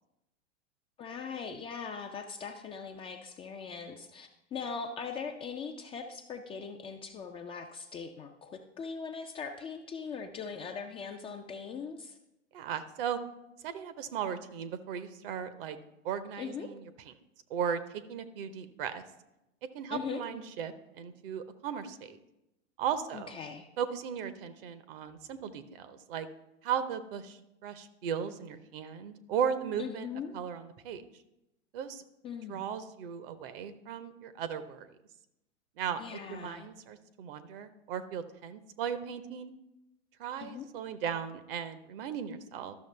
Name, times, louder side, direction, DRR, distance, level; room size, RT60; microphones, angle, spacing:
voice 1, 1.0-12.2 16.4-16.7 19.9-20.2 23.1-23.7 29.8-30.4 32.2-32.7 36.0-36.7 40.4-40.7, left 6 dB, 15° left, 4 dB, 0.4 m, -40 dB
voice 2, 12.5-13.2 13.6-15.8 16.0-17.1 17.5-19.0 19.7-22.2 22.8-23.4 23.8-26.3 26.6-30.1 30.3-31.0 31.7-32.0 32.5-34.9 35.8-39.5 40.2-42.8, right 8 dB, 50° right, 12 dB, 0.8 m, -36 dB
12.5 x 6.4 x 3.3 m, 0.90 s
hypercardioid pair, 100°, 35 cm